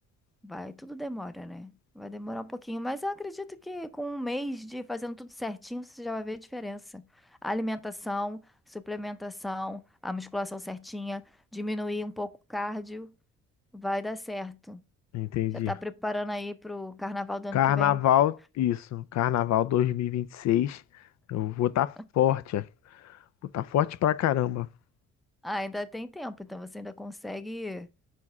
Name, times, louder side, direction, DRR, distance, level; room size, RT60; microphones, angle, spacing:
voice 1, 0.4-7.1 7.4-11.2 11.5-13.1 13.7-14.8 15.5-18.0 25.4-27.9, left 1 dB, ahead, 0.5 m, -35 dB
voice 2, 15.1-15.7 17.5-20.8 21.3-22.7 23.5-24.7, left 12 dB, 65° left, 0.4 m, -25 dB
4.8 x 4.5 x 5.5 m
cardioid pair, 90°, 30 cm